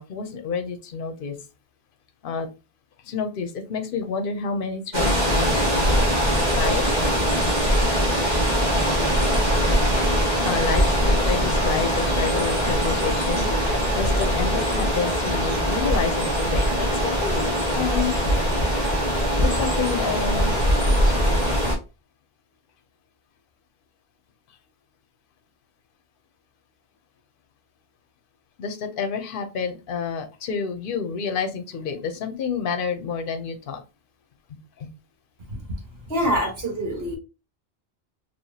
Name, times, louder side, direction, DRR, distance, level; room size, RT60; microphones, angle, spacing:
voice 1, 0.0-1.4 2.2-2.5 3.0-6.0 6.5-7.0 8.4-8.5 10.4-18.2 19.4-20.6 28.6-33.8 34.5-34.9, left 5 dB, 60° left, 7 dB, 0.9 m, -29 dB
sound 1, 4.9-21.7, equal, 45° right, 1.9 m, -22 dB
voice 2, 36.1-37.2, equal, 70° right, 0 dB, 1.8 m, -25 dB
4.7 x 3.0 x 2.8 m, 0.30 s
omnidirectional pair, 1.1 m